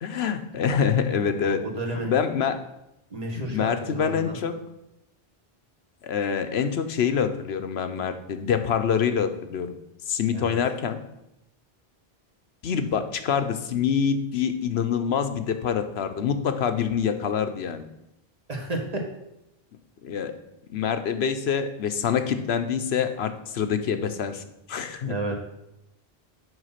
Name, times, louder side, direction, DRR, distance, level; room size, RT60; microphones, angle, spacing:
voice 1, 0.0-1.6 2.1-2.6 3.4-4.5 6.0-9.7 10.1-11.0 12.6-17.9 20.0-20.3 20.7-25.1, left 7 dB, 85° left, 8 dB, 1.0 m, -26 dB
voice 2, 1.4-2.1 3.1-4.4 10.3-10.6 18.5-19.0 25.1-25.4, right 2 dB, 40° right, 1 dB, 1.7 m, -32 dB
8.0 x 5.7 x 5.7 m, 0.86 s
omnidirectional pair, 1.1 m